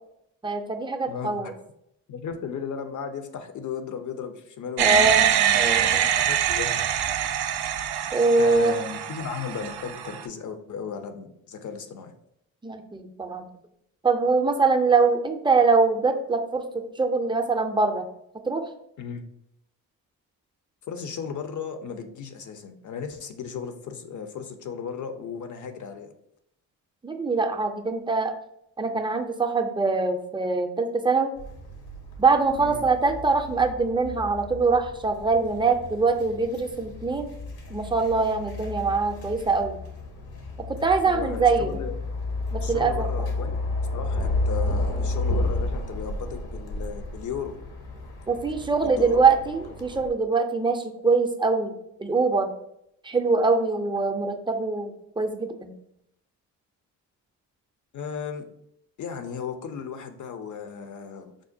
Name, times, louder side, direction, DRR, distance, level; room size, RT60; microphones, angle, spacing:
voice 1, 0.4-1.5 4.8-6.1 8.1-8.8 12.6-13.4 14.0-16.7 17.0-18.0 18.5-18.6 27.0-28.3 28.8-31.3 32.2-37.3 37.7-39.8 40.7-41.8 42.5-43.3 48.3-51.7 52.0-52.5 53.0-55.7, right 4 dB, 10° right, 4 dB, 0.4 m, -23 dB
voice 2, 1.1-1.5 2.1-5.2 6.2-6.8 8.4-12.1 19.0-19.2 20.9-26.1 32.6-32.8 41.1-42.0 42.6-43.6 43.9-47.6 48.8-49.2 57.9-58.4 59.0-61.3, left 6 dB, 45° left, 7 dB, 0.6 m, -35 dB
sound 1, 4.8-10.2, right 9 dB, 65° right, 0.5 m, -24 dB
sound 2, 31.4-50.1, left 2 dB, 65° left, 0.9 m, -32 dB
4.8 x 2.1 x 2.5 m, 0.77 s
supercardioid pair, 55°, 41 cm